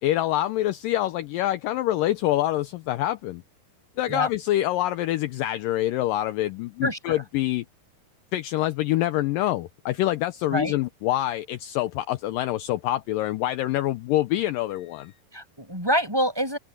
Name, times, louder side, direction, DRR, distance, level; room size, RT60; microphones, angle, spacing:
voice 1, 0.0-3.4 4.0-7.7 8.3-15.2, left 14 dB, 80° left, 2.1 m, -26 dB
voice 2, 6.8-7.2 10.5-10.7 15.3-16.6, equal, 5° right, 6.9 m, -26 dB
omnidirectional pair, 4.6 m